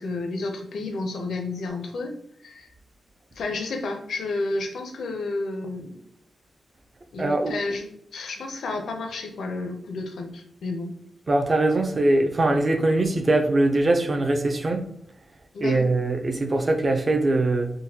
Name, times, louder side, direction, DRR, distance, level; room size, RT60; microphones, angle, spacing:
voice 1, 0.0-2.1 2.4-2.7 3.3-6.0 7.1-7.9 8.1-10.9 15.5-15.9, left 3 dB, 80° left, 4 dB, 0.5 m, -31 dB
voice 2, 7.2-7.5 11.3-14.9 15.6-17.7, right 2 dB, 35° right, 4 dB, 0.4 m, -22 dB
3.7 x 2.1 x 2.8 m, 0.71 s
wide cardioid pair, 115°, 0 cm